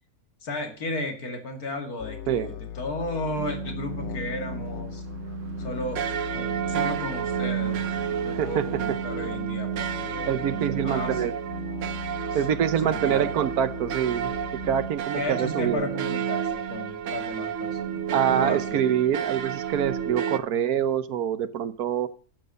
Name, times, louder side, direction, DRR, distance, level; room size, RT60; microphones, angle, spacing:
voice 1, 0.4-5.0 5.6-6.1 6.3-7.8 8.2-11.2 12.3-12.4 12.8-13.3 15.1-18.8, left 2 dB, 80° left, 5 dB, 2.6 m, -34 dB
sound 1, 2.0-14.9, left 11 dB, 55° left, 1.0 m, -39 dB
sound 2, 3.4-20.4, right 9 dB, 65° right, 1.0 m, -31 dB
voice 2, 8.4-9.0 10.3-11.3 12.3-14.3 14.6-15.9 18.1-22.1, right 9 dB, 80° right, 13 dB, 1.4 m, -25 dB
11.5 x 7.9 x 6.5 m, 0.41 s
omnidirectional pair, 1.6 m